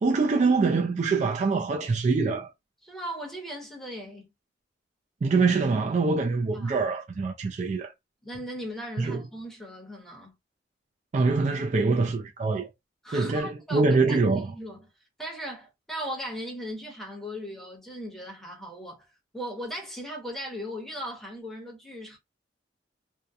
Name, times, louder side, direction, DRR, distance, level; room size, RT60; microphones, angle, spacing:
voice 1, 0.0-2.5 5.2-7.9 9.0-9.2 11.1-12.7 13.1-14.5, right 4 dB, 40° right, 0.3 m, -24 dB
voice 2, 2.8-4.3 6.5-6.7 8.2-10.3 13.0-14.9 15.2-19.0 19.3-22.2, equal, ahead, 0.8 m, -38 dB
2.7 x 2.0 x 2.3 m
head